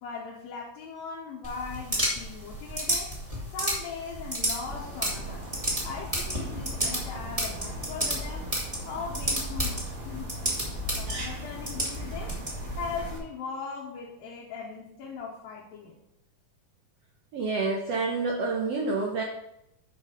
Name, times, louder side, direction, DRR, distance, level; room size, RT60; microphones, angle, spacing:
voice 1, 0.0-3.1 3.5-5.5 5.8-8.5 8.9-10.3 10.9-12.4 12.8-16.0, left 5 dB, 80° left, -3 dB, 2.8 m, -39 dB
sound 1, 1.4-13.2, right 1 dB, 10° right, 1.7 m, -32 dB
sound 2, 4.6-13.2, right 1 dB, 40° right, 2.2 m, -42 dB
voice 2, 17.3-19.2, right 3 dB, 85° right, 0 dB, 1.3 m, -28 dB
11.0 x 4.6 x 4.9 m, 0.82 s
omnidirectional pair, 4.2 m